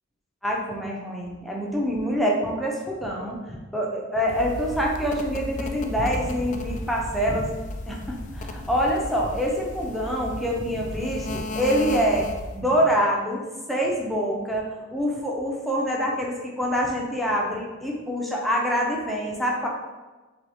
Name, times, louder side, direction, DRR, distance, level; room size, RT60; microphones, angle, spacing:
voice 1, 0.4-7.5 7.9-12.3 12.5-19.7, equal, ahead, -3 dB, 0.7 m, -26 dB
sound 1, 4.3-12.6, left 2 dB, 35° left, 0.3 m, -35 dB
4.1 x 3.5 x 3.5 m, 1.2 s
head